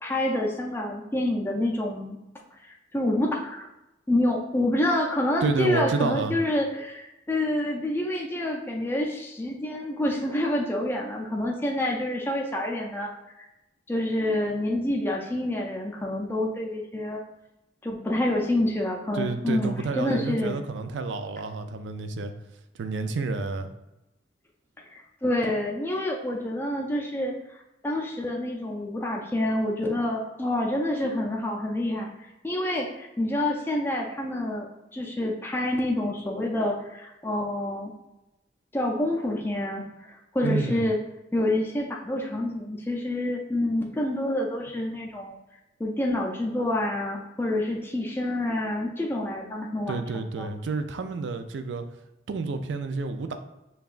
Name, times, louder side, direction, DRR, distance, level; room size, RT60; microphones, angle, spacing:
voice 1, 0.0-2.2 2.6-3.7 4.1-13.1 13.4-13.5 13.9-17.2 17.8-20.6 24.8-32.1 32.4-37.9 38.7-41.0 41.3-45.4 45.8-50.5, left 1 dB, 10° left, -1 dB, 0.4 m, -28 dB
voice 2, 5.4-6.4 19.1-22.3 22.7-23.7 40.4-40.8 49.9-51.8 52.3-53.4, right 4 dB, 85° right, 8 dB, 0.4 m, -29 dB
5.4 x 2.3 x 2.4 m, 0.94 s
head